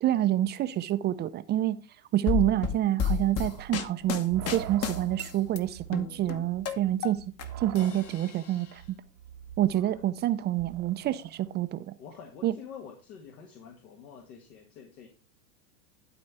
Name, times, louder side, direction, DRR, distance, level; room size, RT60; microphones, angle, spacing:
voice 1, 0.0-1.8 2.1-7.2 7.6-8.8 9.6-11.9 12.4-12.5, right 13 dB, 25° right, 0.4 m, -27 dB
sound 1, 2.3-5.6 5.9-7.5 7.8-8.6, left 7 dB, 30° left, 1.0 m, -31 dB
sound 2, 3.5-11.6, right 10 dB, 80° right, 1.0 m, -44 dB
voice 2, 12.0-15.1, left 7 dB, 75° left, 2.0 m, -47 dB
11.5 x 4.3 x 4.8 m
hypercardioid pair, 115°, 45 cm